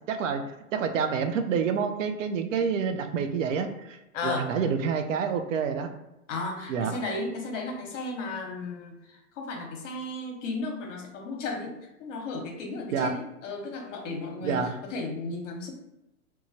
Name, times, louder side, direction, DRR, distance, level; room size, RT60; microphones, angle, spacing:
voice 1, 0.1-0.4 0.7-4.0 4.2-5.9 6.7-6.9 12.9-13.2 14.4-14.8, right 6 dB, 60° right, 7 dB, 0.5 m, -28 dB
voice 2, 4.1-4.6 6.3-15.7, left 3 dB, 55° left, 2 dB, 0.9 m, -35 dB
3.1 x 2.2 x 2.6 m, 0.89 s
hypercardioid pair, 135°, 44 cm